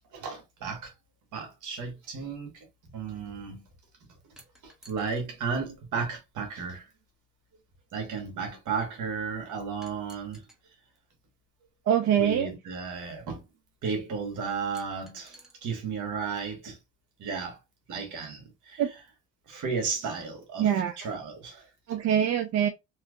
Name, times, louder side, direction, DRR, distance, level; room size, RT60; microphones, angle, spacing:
voice 1, 0.1-0.9 1.3-3.6 4.0-4.2 4.6-6.9 7.9-10.5 12.2-13.4 13.8-16.8 17.2-17.6 17.9-18.8 19.5-21.7, right 5 dB, 80° right, 1.4 m, -34 dB
sound 1, 4.4-5.2 6.5-6.6 9.8-10.6 12.1-12.2 14.7-15.5, right 1 dB, ahead, 1.0 m, -54 dB
voice 2, 11.9-12.5 18.8-18.9 20.6-21.0 21.9-22.7, right 9 dB, 60° right, 0.5 m, -24 dB
3.2 x 2.8 x 2.4 m
cardioid pair, 90°, 30 cm